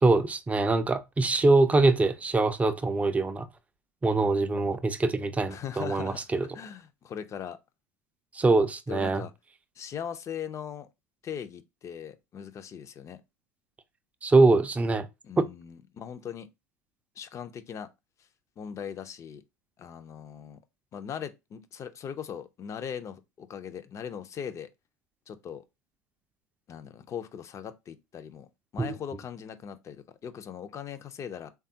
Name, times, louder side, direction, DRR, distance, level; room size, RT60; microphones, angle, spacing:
voice 1, 0.0-3.5 4.0-6.5 8.3-9.2 14.2-15.1 15.4-15.5 28.8-28.9, right 3 dB, 15° right, 0.4 m, -23 dB
voice 2, 5.5-7.6 8.9-9.3 9.8-10.9 11.2-13.2 15.2-16.5 17.2-17.9 18.6-19.4 19.8-20.6 20.9-24.7 25.3-25.6 26.7-31.5, left 8 dB, 35° left, 0.5 m, -39 dB
3.4 x 2.3 x 2.7 m
hypercardioid pair, 80°, 8 cm